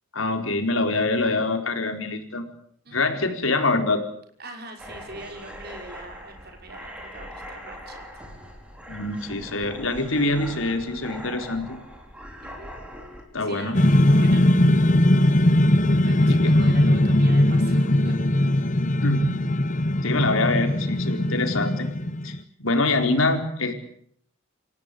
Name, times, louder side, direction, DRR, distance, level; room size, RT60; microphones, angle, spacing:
voice 1, 0.1-2.5 2.9-4.0 8.9-11.8 13.3-13.8 16.1-16.5 19.0-19.4 20.0-21.9 22.2-23.7, left 2 dB, 80° left, 5 dB, 4.4 m, -25 dB
voice 2, 2.8-3.2 4.4-8.0 12.4-12.7 13.4-14.5 14.7-14.8 16.0-18.2, right 2 dB, 50° right, 4 dB, 5.9 m, -42 dB
sound 1, 4.8-13.2, equal, 5° right, 5.1 m, -41 dB
sound 2, 13.7-22.4, left 1 dB, 40° left, 1.1 m, -20 dB
29.0 x 16.5 x 8.5 m, 0.65 s
head